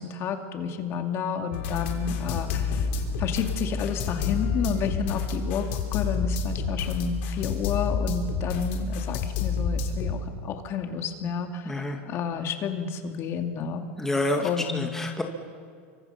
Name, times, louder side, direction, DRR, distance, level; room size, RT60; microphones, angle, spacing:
voice 1, 0.0-2.9 3.2-13.8 14.4-14.9, left 6 dB, 40° left, 4 dB, 2.4 m, -31 dB
sound 1, 1.5-10.1, left 5 dB, 65° left, 4.2 m, -29 dB
voice 2, 11.7-12.0 14.0-15.2, left 1 dB, 5° left, 2 dB, 2.0 m, -28 dB
28.5 x 25.0 x 5.8 m, 2.1 s
supercardioid pair, 130°, 7 cm